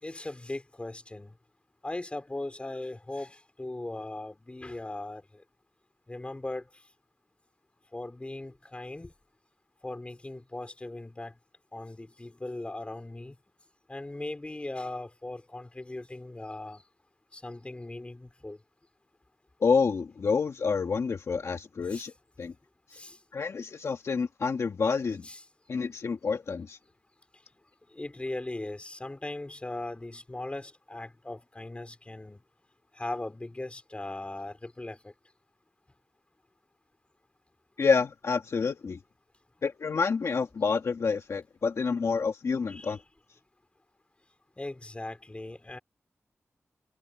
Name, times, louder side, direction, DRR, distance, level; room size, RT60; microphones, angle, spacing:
voice 1, 0.0-1.3 1.8-5.2 6.1-6.6 7.9-9.1 9.8-11.3 11.7-13.3 13.9-16.8 17.3-18.6 21.9-22.1 22.9-23.2 25.2-25.4 27.9-32.4 33.0-35.0 42.7-43.0 44.6-45.8, left 2 dB, 25° left, 4.0 m, -39 dB
voice 2, 19.6-22.1 22.4-22.5 23.3-25.2 25.7-26.8 37.8-39.0 39.6-43.0, left 5 dB, 70° left, 1.5 m, -28 dB
wide cardioid pair, 80°, 5 cm